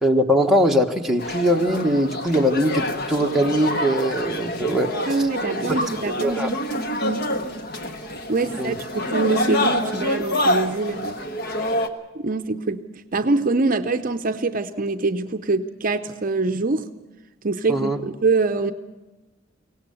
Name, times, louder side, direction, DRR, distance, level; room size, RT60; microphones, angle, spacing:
voice 1, 0.0-5.0 5.7-5.8 6.2-6.5 8.6-8.7 17.7-18.0, equal, ahead, 0 dB, 1.2 m, -21 dB
sound 1, 1.2-11.9, left 1 dB, 55° left, 1.3 m, -27 dB
voice 2, 5.1-6.6 7.0-7.3 8.3-11.2 12.1-12.8 13.1-16.9 17.4-18.7, right 3 dB, 45° right, 9 dB, 0.6 m, -24 dB
23.5 x 17.5 x 6.9 m, 1.1 s
head